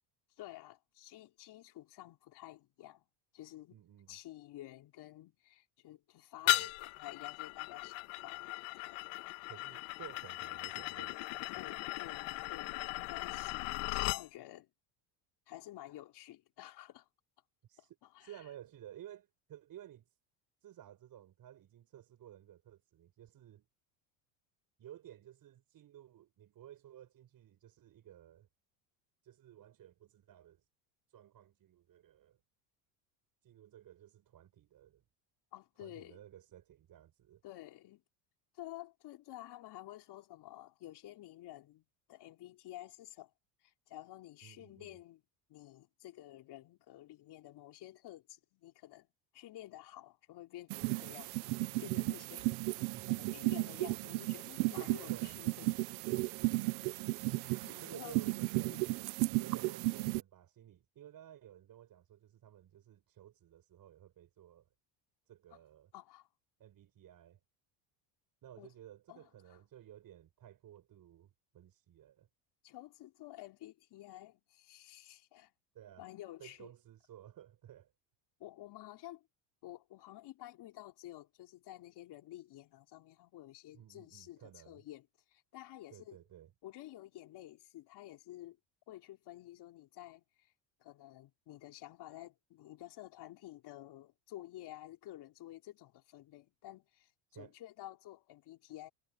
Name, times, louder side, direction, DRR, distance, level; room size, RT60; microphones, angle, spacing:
voice 1, 0.4-3.1 3.3-3.8 4.1-8.5 8.7-9.4 11.5-13.7 14.1-14.7 15.5-17.1 17.8-17.9 18.1-18.3 35.5-36.2 37.4-38.0 38.5-43.3 43.6-45.2 45.5-49.1 49.3-51.3 51.8-55.8 56.4-56.7 57.6-58.1 58.6-58.8 65.9-66.3 68.6-68.7 69.1-69.6 72.6-75.5 76.0-76.7 78.4-79.3 79.6-86.2 86.6-88.6 88.9-90.5 90.8-98.9, left 15 dB, 55° left, 4.1 m, -51 dB
voice 2, 3.7-4.2 6.4-6.7 9.5-11.6 17.6-20.2 20.6-23.7 24.8-28.5 29.2-30.7 31.1-32.4 33.4-35.0 35.8-37.4 44.4-45.0 52.9-53.3 55.1-55.4 57.8-58.8 59.4-64.7 65.3-65.9 66.6-67.4 68.4-72.3 75.7-76.1 76.4-77.9 83.7-84.8 85.9-86.5 97.3-97.5, right 11 dB, 45° right, 5.9 m, -55 dB
sound 1, 6.5-14.3, left 21 dB, 70° left, 1.8 m, -37 dB
sound 2, 50.7-60.2, right 23 dB, 75° right, 1.2 m, -35 dB
supercardioid pair, 115°, 47 cm